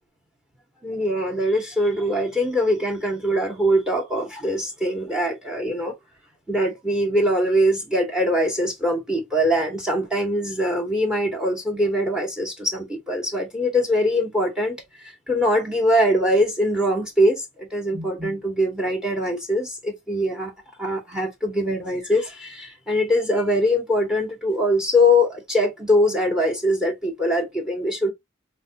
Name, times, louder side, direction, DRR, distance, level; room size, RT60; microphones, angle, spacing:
voice 1, 0.8-5.9 6.5-20.5 20.8-28.1, equal, 5° right, 0.9 m, -22 dB
4.6 x 2.2 x 2.7 m
head